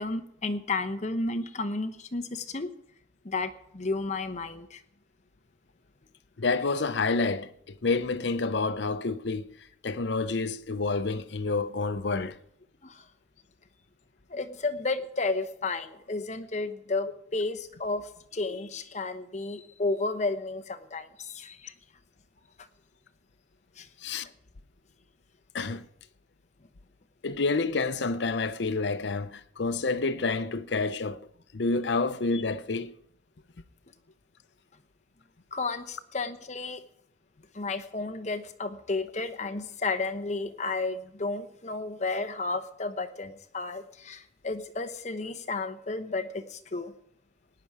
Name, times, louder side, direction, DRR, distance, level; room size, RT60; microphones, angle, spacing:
voice 1, 0.0-2.7 3.2-4.8 12.8-13.1 14.3-21.7 23.8-23.9 35.5-36.8 37.5-46.9, left 3 dB, 40° left, 1.0 m, -32 dB
voice 2, 6.4-9.5 9.8-12.4 24.0-24.3 25.5-25.8 27.2-31.3 31.5-33.0, left 3 dB, 75° left, 0.7 m, -28 dB
17.5 x 10.5 x 4.8 m
head